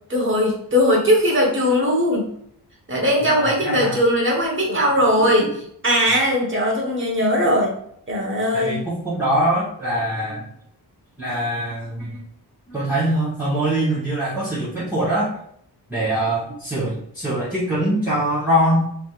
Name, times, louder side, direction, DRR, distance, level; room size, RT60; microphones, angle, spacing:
voice 1, 0.1-2.3 2.9-5.5 5.8-7.8 8.1-8.8, equal, 30° right, -2 dB, 1.2 m, -19 dB
voice 2, 3.2-4.0 5.2-5.3 8.5-10.5 11.2-12.2 12.7-15.3 15.9-18.9, right 1 dB, 5° right, -14 dB, 1.6 m, -23 dB
4.9 x 3.3 x 2.4 m, 0.68 s
wide cardioid pair, 165°, 41 cm